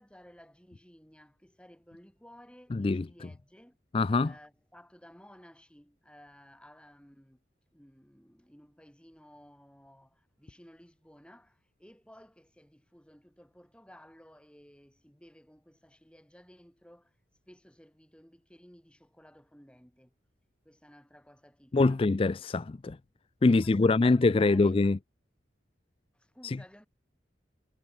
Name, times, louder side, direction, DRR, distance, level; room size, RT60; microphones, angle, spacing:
voice 1, 0.0-3.8 4.2-7.4 7.7-17.2 17.5-20.1 20.6-22.1 23.5-24.9 26.1-26.9, equal, 5° left, 5.6 m, -56 dB
voice 2, 2.7-3.0 3.9-4.3 21.7-23.0 23.4-25.0 26.4-26.6, left 3 dB, 30° left, 0.4 m, -24 dB
head